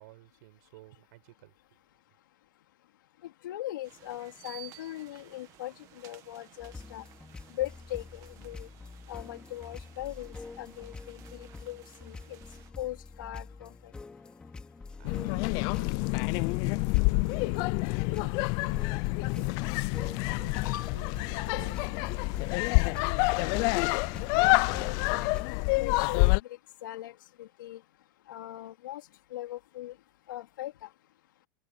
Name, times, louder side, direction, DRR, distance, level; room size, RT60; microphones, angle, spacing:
voice 1, 0.0-1.5 14.9-17.7 18.1-21.8, right 20 dB, 60° right, 5.3 m, -53 dB
voice 2, 3.2-7.0 7.5-8.7 9.1-12.4 12.8-13.9 20.4-20.9 24.3-26.2 26.8-27.8 28.3-29.0 29.3-29.9 30.3-30.9, left 14 dB, 85° left, 3.4 m, -40 dB
sound 1, 3.8-12.7, right 15 dB, 30° right, 1.8 m, -55 dB
sound 2, 6.6-25.4, left 3 dB, 10° left, 3.9 m, -46 dB
sound 3, 15.0-26.4, left 27 dB, 35° left, 0.4 m, -27 dB
supercardioid pair, 165°, 10 cm